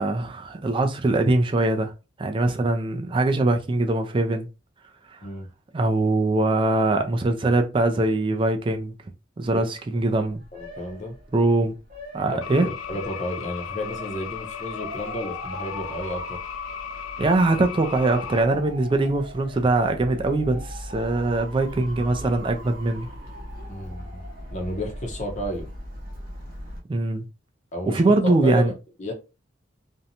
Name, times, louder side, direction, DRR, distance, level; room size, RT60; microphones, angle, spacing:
voice 1, 0.0-1.9 2.2-4.5 5.1-5.2 5.7-8.9 9.4-10.4 11.3-11.7 12.1-12.7 17.2-23.1 26.9-27.2 27.9-28.7, right 2 dB, 25° right, 0.3 m, -22 dB
Motor vehicle (road) / Siren, 10.0-26.8, equal, 45° right, 0.8 m, -39 dB
voice 2, 10.5-11.2 12.3-16.4 23.7-24.2 24.5-25.7 27.7-28.7 29.0-29.1, left 1 dB, 35° left, 0.6 m, -32 dB
sound 1, 12.4-18.4, left 8 dB, 75° left, 0.3 m, -36 dB
2.5 x 2.1 x 2.7 m
head